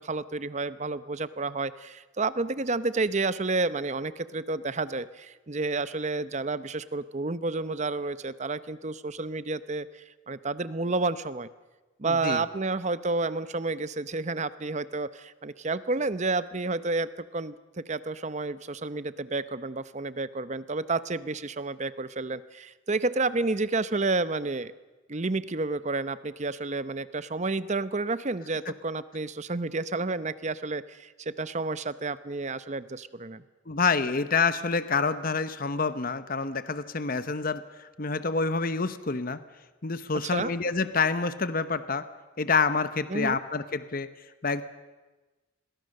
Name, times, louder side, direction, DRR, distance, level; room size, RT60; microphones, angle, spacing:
voice 1, 0.0-11.5 12.0-24.7 25.1-33.4 40.2-40.5 43.1-43.4, right 3 dB, 35° right, 14 dB, 0.8 m, -30 dB
voice 2, 12.0-12.4 33.7-39.4 39.8-42.1 42.4-44.1 44.4-44.6, left 4 dB, 45° left, 12 dB, 1.0 m, -27 dB
29.5 x 22.0 x 6.6 m, 1.2 s
head